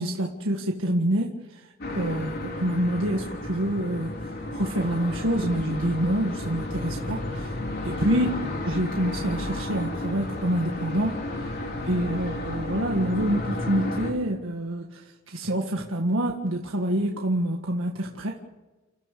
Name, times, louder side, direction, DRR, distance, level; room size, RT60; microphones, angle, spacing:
voice 1, 0.0-1.6 1.9-7.5 7.8-11.2 11.9-18.4, right 1 dB, 75° right, 1 dB, 1.8 m, -27 dB
sound 1, 1.8-14.1, left 1 dB, 50° left, 3.7 m, -32 dB
30.0 x 14.5 x 6.8 m, 1.1 s
head